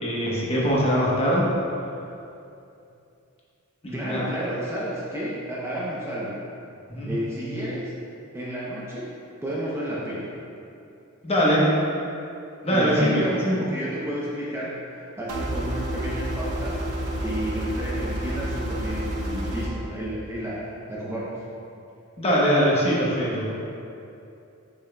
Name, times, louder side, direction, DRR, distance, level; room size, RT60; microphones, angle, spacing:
voice 1, 0.0-1.5 3.8-4.2 6.9-7.1 11.2-11.7 12.6-13.6 22.2-23.4, equal, 30° left, -5 dB, 1.1 m, -22 dB
voice 2, 3.9-6.4 7.1-7.9 8.3-9.1 9.4-10.3 12.7-21.3, equal, 10° right, -7 dB, 0.7 m, -32 dB
sound 1, 15.3-19.7, right 1 dB, 80° right, 0.8 m, -29 dB
7.0 x 6.1 x 2.3 m, 2.7 s
head